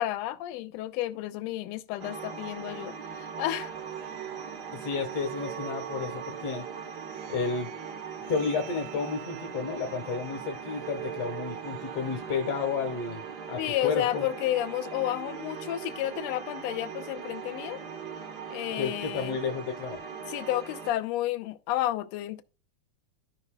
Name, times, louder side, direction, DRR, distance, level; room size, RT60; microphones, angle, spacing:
voice 1, 0.0-3.7 13.6-17.8 18.5-19.4 20.3-22.4, left 14 dB, 80° left, 1.6 m, -31 dB
sound 1, 2.0-20.9, right 7 dB, 55° right, 1.1 m, -40 dB
sound 2, 3.7-13.0, right 13 dB, 75° right, 1.6 m, -45 dB
voice 2, 4.7-6.7 7.3-7.7 8.3-13.2 13.5-14.2 18.8-20.0, left 5 dB, 60° left, 2.1 m, -31 dB
15.5 x 5.3 x 2.2 m
omnidirectional pair, 3.4 m